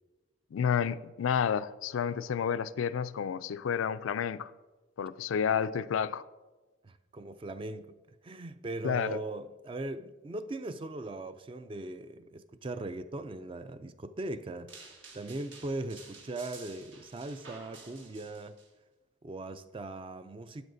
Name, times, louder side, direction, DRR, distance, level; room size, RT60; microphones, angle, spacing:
voice 1, 0.5-4.5 5.0-6.2 8.8-9.2, left 7 dB, 85° left, 0.3 m, -30 dB
voice 2, 6.8-8.0 8.2-14.7 15.1-18.6 19.2-20.6, right 2 dB, 25° right, 0.3 m, -39 dB
sound 1, 14.7-18.7, right 4 dB, 70° right, 1.7 m, -52 dB
12.5 x 9.5 x 2.6 m
head